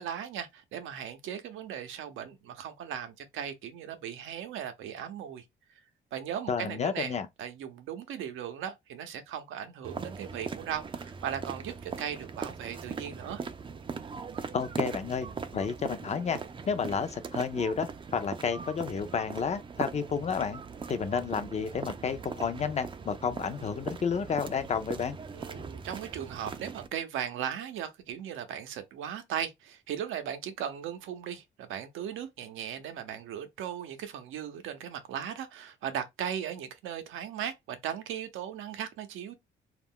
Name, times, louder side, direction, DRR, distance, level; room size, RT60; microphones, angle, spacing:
voice 1, 0.0-5.4 6.1-13.4 25.3-39.3, right 9 dB, 85° right, 0.6 m, -37 dB
voice 2, 6.5-7.3 14.5-15.3 15.5-16.4 16.7-20.6 20.9-25.2, left 6 dB, 35° left, 0.5 m, -31 dB
sound 1, 9.8-26.9, right 5 dB, 25° right, 0.4 m, -40 dB
2.4 x 2.1 x 3.6 m
cardioid pair, 90°, 20 cm